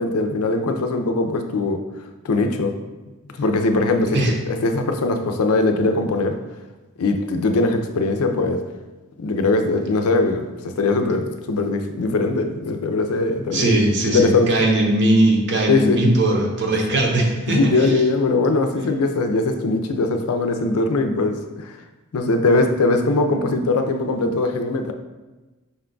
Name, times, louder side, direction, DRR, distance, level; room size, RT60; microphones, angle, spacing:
voice 1, 0.0-1.8 2.2-2.7 3.3-6.4 7.0-8.6 9.2-13.8 14.1-14.5 15.7-16.0 16.7-16.8 17.5-21.8 22.1-24.9, left 3 dB, 80° left, 6 dB, 0.5 m, -21 dB
voice 2, 13.5-17.9, right 1 dB, 55° right, 0 dB, 0.8 m, -19 dB
5.4 x 2.3 x 3.7 m, 1.2 s
head